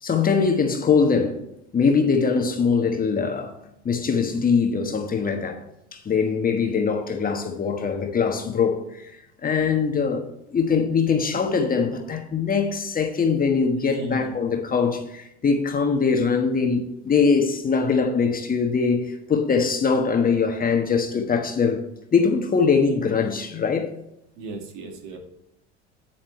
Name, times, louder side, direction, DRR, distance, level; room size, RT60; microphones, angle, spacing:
voice 1, 0.0-1.4 1.7-3.6 3.8-5.6 5.9-9.1 9.4-21.8 22.1-23.9, left 5 dB, 25° left, 1.3 m, -22 dB
voice 2, 13.8-14.3 24.4-25.2, right 2 dB, 55° right, 2.2 m, -36 dB
9.2 x 8.7 x 3.2 m
hypercardioid pair, 75°, 34 cm